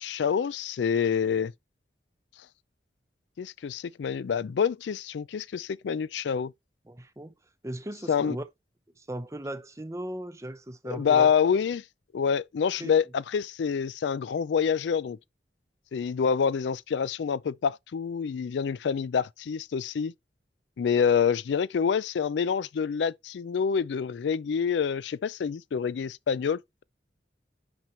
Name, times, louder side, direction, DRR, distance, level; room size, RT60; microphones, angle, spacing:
voice 1, 0.0-1.5 3.4-6.5 8.1-8.4 10.8-11.8 12.1-15.2 15.9-20.1 20.8-26.8, left 7 dB, 85° left, 0.4 m, -27 dB
voice 2, 6.9-7.3 7.6-8.5 9.0-11.3 12.8-12.9, right 1 dB, 15° right, 0.7 m, -37 dB
5.9 x 5.2 x 4.3 m
head